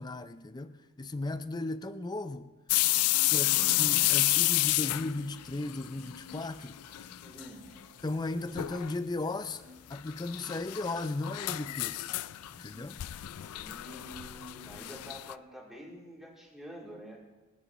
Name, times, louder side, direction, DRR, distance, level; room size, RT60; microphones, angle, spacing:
voice 1, 0.0-2.5 3.3-6.8 8.0-9.6 9.9-12.2 12.6-13.0, left 2 dB, 20° left, 0.4 m, -36 dB
sound 1, 2.7-6.5 6.8-7.5 7.8-7.9 8.6-8.9 9.9-15.3, left 17 dB, 90° left, 0.4 m, -30 dB
sound 2, 4.2-14.7, left 1 dB, 75° right, 4.0 m, -58 dB
voice 2, 7.2-7.7 13.4-17.2, equal, ahead, 3.1 m, -48 dB
27.5 x 9.6 x 3.1 m
head